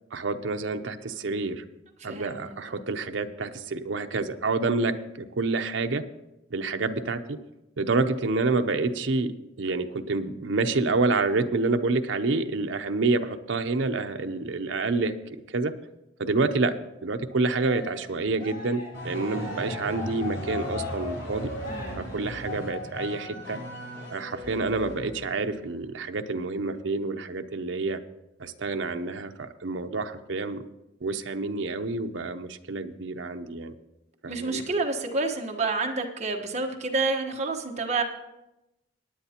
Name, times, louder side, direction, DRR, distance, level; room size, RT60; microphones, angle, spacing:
voice 1, 0.1-1.6 2.0-6.1 6.5-7.4 7.8-15.7 16.2-16.8 17.0-21.5 22.0-23.6 24.1-28.0 28.4-30.6 31.0-33.7 34.2-34.6, right 3 dB, 70° right, 7 dB, 0.7 m, -28 dB
voice 2, 2.0-2.8 21.7-22.1 34.3-38.0, right 3 dB, 35° right, 2 dB, 1.2 m, -29 dB
Cheering, 17.4-22.9, equal, 50° left, 2.4 m, -43 dB
sound 1, 18.9-25.4, left 1 dB, 90° left, 4.6 m, -36 dB
18.5 x 9.9 x 2.9 m, 0.94 s
head